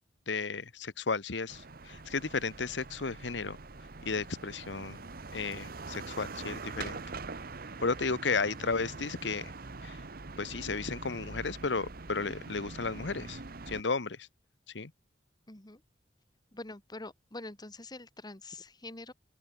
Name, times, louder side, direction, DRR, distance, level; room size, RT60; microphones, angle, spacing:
voice 1, 0.3-3.6 4.0-5.0 5.3-7.0 7.8-9.5 9.8-10.0 10.4-13.4 13.7-14.3 14.7-14.9, left 4 dB, 85° left, 1.2 m, -33 dB
sound 1, 1.5-13.8, right 3 dB, 55° right, 1.2 m, -44 dB
voice 2, 15.5-15.8 16.5-19.1, left 2 dB, 25° left, 2.0 m, -45 dB
open air
head